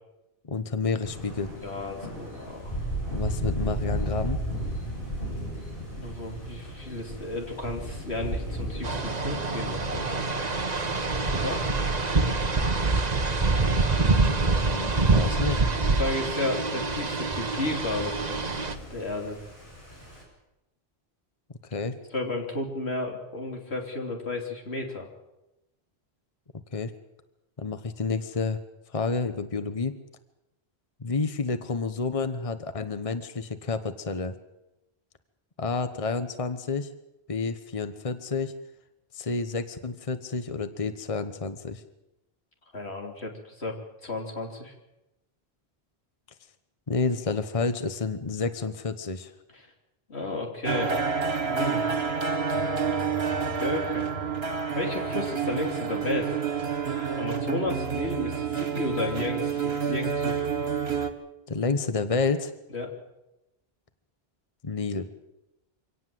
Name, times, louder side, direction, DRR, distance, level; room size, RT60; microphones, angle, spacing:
voice 1, 0.4-1.5 3.1-4.4 14.0-15.6 21.7-22.0 26.7-26.9 27.6-28.6 28.9-30.0 31.0-34.3 35.6-36.9 37.3-38.5 39.1-41.8 46.9-49.3 61.5-62.5 64.6-65.1, left 4 dB, 35° left, 10 dB, 1.1 m, -30 dB
Thunder, 1.0-20.2, equal, 55° left, 7.6 m, -36 dB
voice 2, 1.6-2.7 6.0-10.1 11.3-11.6 15.8-18.6 18.9-19.4 22.1-25.1 42.7-43.8 44.0-44.7 49.5-49.7 50.1-51.9 53.4-54.1 54.7-56.4 57.2-60.4 62.7-62.9, left 2 dB, 85° left, 1 dB, 3.4 m, -33 dB
sound 1, 8.8-18.7, right 3 dB, 40° right, 1.4 m, -26 dB
sound 2, 50.6-61.1, right 6 dB, 70° right, 2.1 m, -28 dB
25.0 x 17.5 x 7.7 m, 0.94 s
omnidirectional pair, 1.1 m